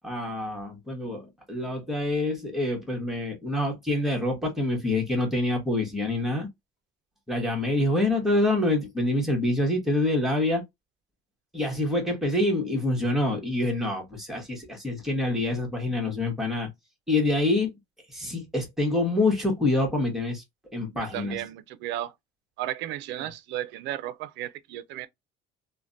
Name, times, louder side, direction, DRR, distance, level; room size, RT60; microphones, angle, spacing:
voice 1, 0.0-6.5 7.3-10.6 11.5-16.7 17.1-17.7 18.1-20.4 20.7-21.4, left 2 dB, ahead, 1.2 m, -26 dB
voice 2, 20.9-22.1 22.6-25.1, right 13 dB, 70° right, 0.4 m, -34 dB
3.3 x 2.1 x 2.5 m
cardioid pair, 130°, 19 cm